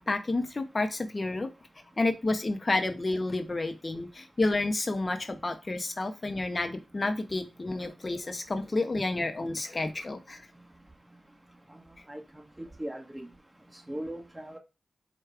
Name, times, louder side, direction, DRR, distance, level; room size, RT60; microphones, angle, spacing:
voice 1, 0.0-1.5 2.0-10.5, left 2 dB, 45° left, 7 dB, 0.6 m, -30 dB
voice 2, 12.6-13.3 13.9-14.6, right 1 dB, 15° right, 0 dB, 1.3 m, -38 dB
4.7 x 2.3 x 4.6 m, 0.27 s
cardioid pair, 45°, 0 cm